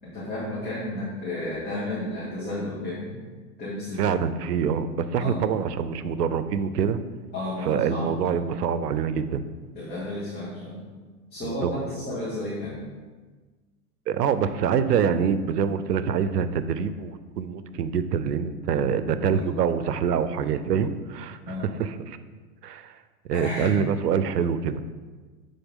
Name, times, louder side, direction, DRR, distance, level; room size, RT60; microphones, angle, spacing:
voice 1, 0.0-3.1 3.6-4.1 5.2-5.4 7.3-8.3 9.7-10.8 11.3-12.8 18.7-19.4 21.4-21.8 23.3-23.8, left 1 dB, 20° left, -9 dB, 2.3 m, -32 dB
voice 2, 4.0-7.0 7.6-9.4 11.4-11.7 14.1-22.2 22.6-22.9 23.3-24.8, right 7 dB, 90° right, 12 dB, 0.7 m, -25 dB
11.0 x 3.8 x 3.7 m, 1.4 s
hypercardioid pair, 120°, 47 cm